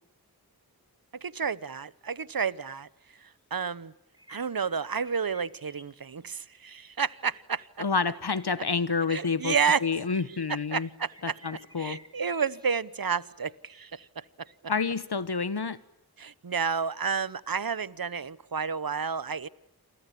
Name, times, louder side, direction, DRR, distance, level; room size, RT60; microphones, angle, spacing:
voice 1, 1.2-2.9 3.5-3.9 4.3-7.7 9.1-9.8 10.7-11.3 11.8-14.2 16.2-19.5, right 6 dB, 65° right, 19 dB, 1.0 m, -30 dB
sound 1, 2.1-2.2 2.9-3.1 4.1-6.6 8.0-8.1 9.8-9.9 10.7-13.5, right 1 dB, 10° right, 5.2 m, -53 dB
voice 2, 7.8-9.5 9.8-10.9 11.2-12.0 14.7-15.8, left 5 dB, 85° left, 15 dB, 1.4 m, -28 dB
28.5 x 23.5 x 8.5 m, 0.82 s
wide cardioid pair, 50°, 38 cm